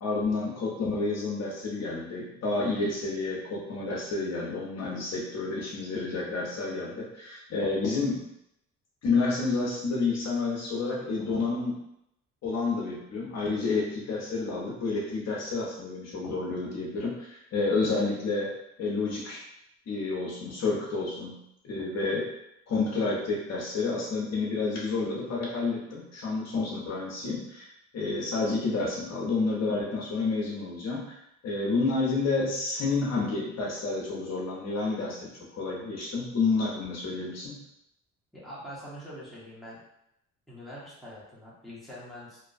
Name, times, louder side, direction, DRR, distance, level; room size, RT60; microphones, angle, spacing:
voice 1, 0.0-8.2 9.0-11.8 12.4-18.5 18.8-19.4 19.9-21.4 21.6-22.3 22.7-31.2 31.4-37.6, left 3 dB, 60° left, -4 dB, 0.7 m, -30 dB
voice 2, 38.3-39.8 40.5-42.5, equal, ahead, -8 dB, 1.0 m, -44 dB
2.6 x 2.2 x 2.4 m, 0.80 s
cardioid pair, 90°, 30 cm